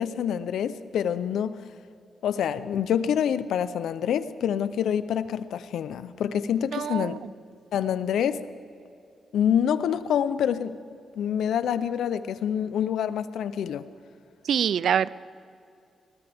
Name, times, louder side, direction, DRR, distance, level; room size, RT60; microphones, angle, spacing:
voice 1, 0.0-1.6 2.2-7.2 7.7-8.5 9.3-10.8 11.2-13.8, left 9 dB, 90° left, 14 dB, 0.6 m, -26 dB
voice 2, 6.7-7.2 14.5-15.1, right 8 dB, 70° right, 20 dB, 0.3 m, -25 dB
20.0 x 20.0 x 3.5 m, 2.5 s
cardioid pair, 115°, 0 cm